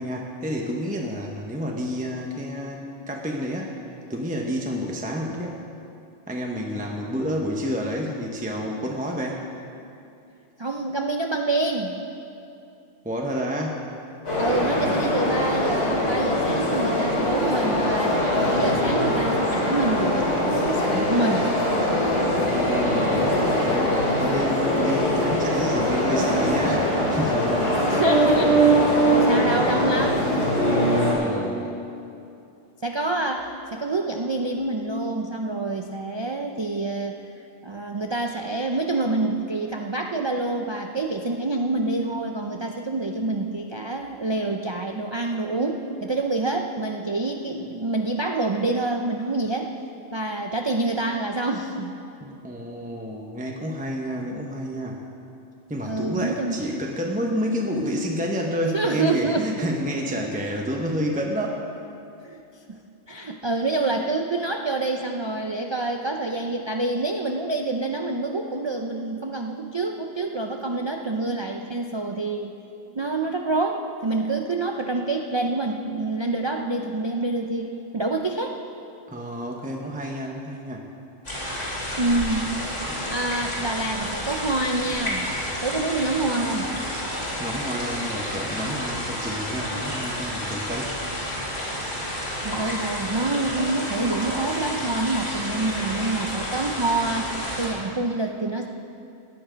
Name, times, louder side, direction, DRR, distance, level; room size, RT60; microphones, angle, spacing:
voice 1, 0.0-3.8 4.1-5.6 6.3-9.5 13.0-13.9 14.8-15.0 22.4-23.4 23.6-28.0 31.1-31.8 52.2-55.0 55.7-61.6 79.1-80.9 82.9-83.0 87.4-90.9, equal, 10° right, 0 dB, 0.9 m, -29 dB
voice 2, 10.6-12.0 14.4-21.5 27.9-30.5 32.8-37.2 37.6-49.7 50.1-52.0 55.9-56.6 58.7-59.7 62.2-62.4 62.7-62.8 63.1-72.5 73.0-78.6 82.0-82.5 83.1-85.3 85.6-86.7 92.4-98.7, right 2 dB, 35° right, 2 dB, 0.5 m, -27 dB
sound 1, 14.3-31.1, equal, 85° left, 3.3 m, -22 dB
sound 2, 81.2-97.7, equal, 65° left, 3.4 m, -30 dB
17.0 x 9.9 x 5.1 m, 2.6 s
omnidirectional pair, 1.1 m